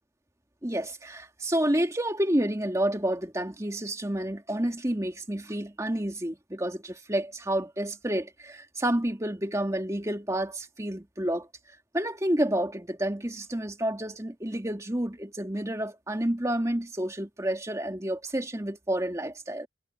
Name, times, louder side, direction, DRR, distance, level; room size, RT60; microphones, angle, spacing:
voice 1, 0.6-11.5 11.9-19.7, right 1 dB, 15° right, 2.1 m, -29 dB
head